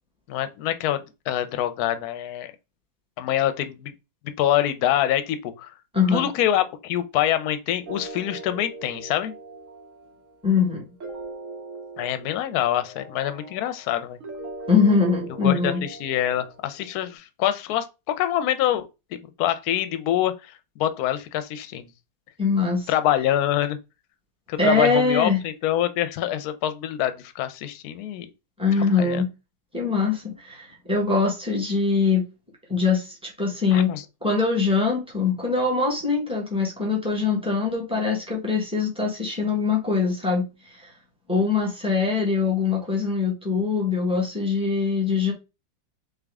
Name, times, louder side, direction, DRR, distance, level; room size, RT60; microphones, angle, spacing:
voice 1, 0.3-2.5 3.2-3.9 4.4-5.7 6.1-9.3 12.0-14.2 15.4-18.8 19.4-21.9 22.9-23.8 24.5-28.3 28.8-29.2 33.7-34.0, left 11 dB, 70° left, 1.0 m, -25 dB
voice 2, 5.9-6.3 10.4-10.8 14.7-15.8 22.4-22.9 24.6-25.4 28.6-29.3 29.7-32.2 32.7-33.9 34.2-40.4 40.7-40.9 41.3-45.3, left 4 dB, 5° right, 1.5 m, -22 dB
sound 1, 7.9-17.0, right 2 dB, 50° right, 1.2 m, -41 dB
3.8 x 3.5 x 3.5 m
omnidirectional pair, 1.9 m